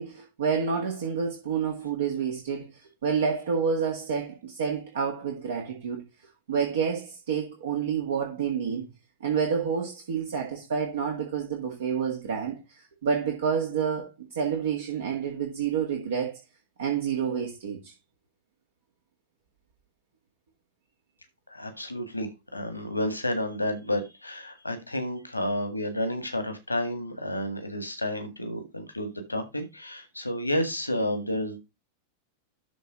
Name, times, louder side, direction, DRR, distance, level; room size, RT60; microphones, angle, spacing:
voice 1, 0.0-6.0 6.5-8.9 9.2-16.4 16.8-17.9, right 6 dB, 60° right, 1.9 m, -29 dB
voice 2, 21.5-31.6, left 1 dB, 85° left, 1.8 m, -31 dB
12.5 x 4.2 x 3.8 m
figure-of-eight pair, 90°, 0 cm